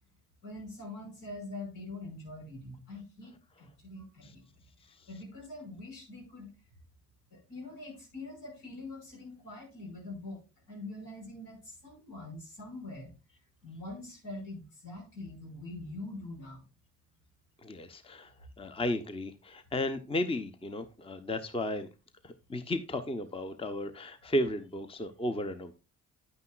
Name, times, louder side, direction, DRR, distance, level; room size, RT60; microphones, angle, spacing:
voice 1, 0.4-4.5 4.8-6.5 7.3-16.6, left 2 dB, 70° left, 6.0 m, -44 dB
voice 2, 17.6-18.3 18.6-21.9 22.2-25.7, left 1 dB, 10° left, 0.9 m, -34 dB
10.0 x 9.5 x 2.4 m
figure-of-eight pair, 45°, 45 cm